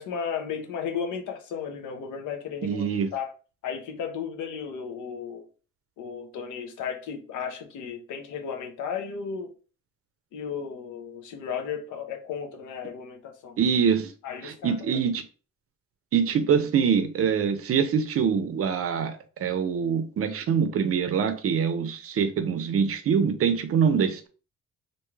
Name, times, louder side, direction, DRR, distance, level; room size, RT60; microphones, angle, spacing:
voice 1, 0.0-3.3 3.6-5.5 6.0-9.5 10.3-13.6 14.2-15.0, left 7 dB, 80° left, 0.7 m, -34 dB
voice 2, 2.6-3.1 13.6-14.1 14.4-15.2 16.1-24.3, right 7 dB, 50° right, 0.5 m, -24 dB
2.6 x 2.3 x 3.1 m
cardioid pair, 90°, 30 cm